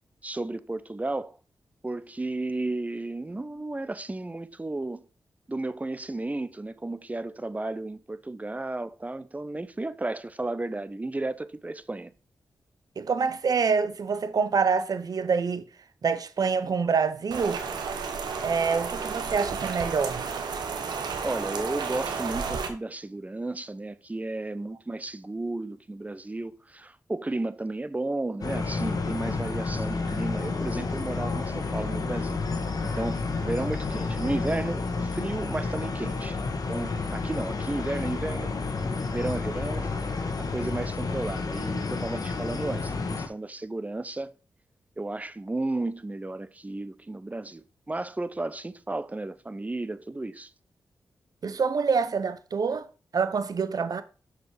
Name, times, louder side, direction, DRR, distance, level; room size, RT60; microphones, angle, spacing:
voice 1, 0.2-1.4 1.8-5.1 5.5-12.1 21.2-32.4 32.8-36.4 36.7-38.5 38.8-39.9 40.4-44.3 45.0-50.5, right 2 dB, 20° right, 0.6 m, -33 dB
voice 2, 13.0-15.6 16.0-17.6 18.4-20.4 51.4-52.9 53.1-54.0, right 5 dB, 60° right, 0.8 m, -26 dB
Rain, 17.3-22.7, right 5 dB, 85° right, 1.1 m, -32 dB
sound 1, 28.4-43.3, left 4 dB, 60° left, 1.3 m, -30 dB
6.2 x 4.9 x 5.0 m
cardioid pair, 45°, 7 cm